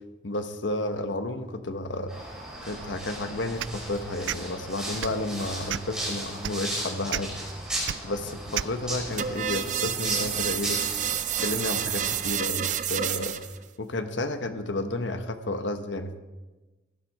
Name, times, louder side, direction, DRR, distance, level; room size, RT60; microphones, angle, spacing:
voice 1, 0.2-2.1 2.7-7.3 8.0-10.8 11.4-13.4 13.8-16.2, left 2 dB, 80° left, 8 dB, 1.1 m, -31 dB
sound 1, 2.1-12.3, right 1 dB, 5° right, 5.7 m, -36 dB
sound 2, 3.6-3.8 4.2-4.4 5.0-5.2 5.7-6.0 6.4-6.5 7.1-7.2 7.8-8.0 8.5-8.7, right 11 dB, 85° right, 0.3 m, -30 dB
sound 3, 9.2-13.6, right 10 dB, 40° right, 0.7 m, -29 dB
18.0 x 12.0 x 4.8 m, 1.2 s
head